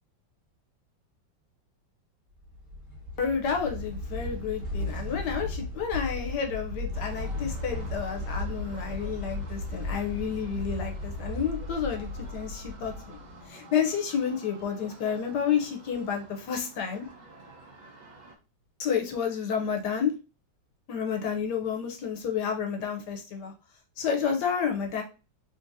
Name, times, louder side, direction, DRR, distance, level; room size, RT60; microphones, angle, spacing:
sound 1, 2.4-13.4, left 2 dB, 20° right, 1.7 m, -35 dB
voice 1, 3.2-13.2 13.5-17.1 18.8-20.1 20.9-23.5 24.0-25.0, left 7 dB, 70° left, 3 dB, 1.2 m, -30 dB
sound 2, 6.9-18.4, right 2 dB, 65° right, 0.4 m, -50 dB
3.9 x 2.7 x 2.6 m, 0.32 s
omnidirectional pair, 2.1 m